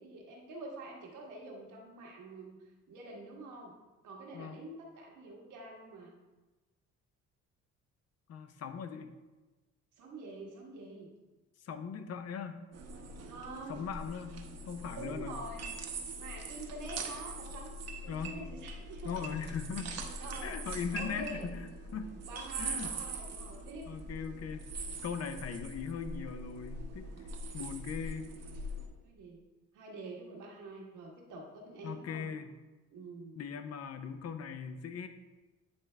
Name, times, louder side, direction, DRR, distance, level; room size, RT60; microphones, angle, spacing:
voice 1, 0.0-2.5 2.9-3.7 4.0-6.1 10.0-11.1 13.2-13.9 14.9-15.7 16.2-17.7 18.0-19.6 20.2-20.6 20.9-21.4 21.9-22.0 22.2-23.9 29.0-29.4 29.7-32.3 32.9-33.3, right 2 dB, 85° right, -1 dB, 1.5 m, -46 dB
voice 2, 8.3-9.2 11.6-12.6 13.7-14.3 14.7-15.4 18.1-18.4 19.0-19.9 20.4-22.1 22.6-22.9 23.9-24.7 25.0-27.1 27.5-28.3 31.8-32.5 33.4-35.1, left 6 dB, 55° left, 9 dB, 0.7 m, -39 dB
sound 1, 12.7-28.9, right 2 dB, 60° right, 0.9 m, -42 dB
9.5 x 3.5 x 3.3 m, 1.2 s
cardioid pair, 90°, 30 cm